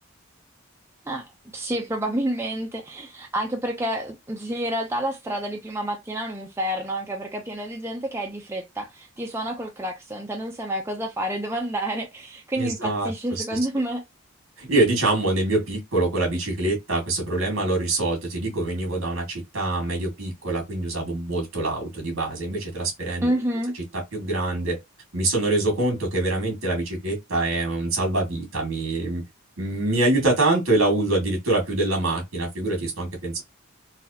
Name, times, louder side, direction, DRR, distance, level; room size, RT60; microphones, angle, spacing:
voice 1, 1.1-14.0 23.2-23.7, right 1 dB, 10° right, 0.5 m, -29 dB
voice 2, 12.6-13.6 14.6-23.3 24.1-24.8 25.1-29.2 29.6-33.4, right 2 dB, 70° right, 2.0 m, -25 dB
4.0 x 2.4 x 2.8 m
head